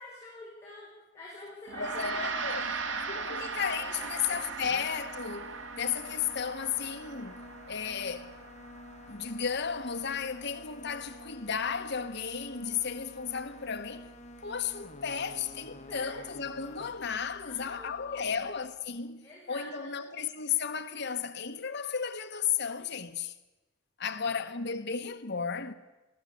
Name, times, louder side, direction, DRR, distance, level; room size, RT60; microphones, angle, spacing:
voice 1, 0.0-4.8 15.9-16.2 17.4-18.5 19.2-20.2 24.1-24.2, left 1 dB, 15° left, 5.5 m, -48 dB
sound 1, 1.7-18.9, left 1 dB, 35° left, 1.6 m, -51 dB
Gong, 1.7-11.2, right 5 dB, 65° right, 1.6 m, -39 dB
voice 2, 1.8-2.7 3.1-8.3 9.1-14.0 14.4-23.3 24.0-25.7, left 7 dB, 60° left, 1.1 m, -34 dB
20.0 x 15.5 x 8.5 m
head